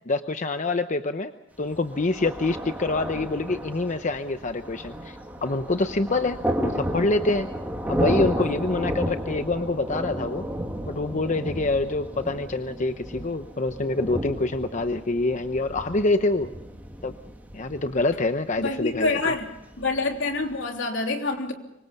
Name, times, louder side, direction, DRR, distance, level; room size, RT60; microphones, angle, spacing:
voice 1, 0.1-1.3 1.6-7.5 7.9-10.5 10.8-16.5 17.0-17.1 17.5-19.2, left 2 dB, 40° left, 0.8 m, -26 dB
Thunder, 1.7-20.6, right 1 dB, 10° right, 2.7 m, -33 dB
voice 2, 18.6-19.5 19.8-21.5, left 3 dB, 75° left, 3.3 m, -26 dB
25.5 x 24.0 x 5.4 m
head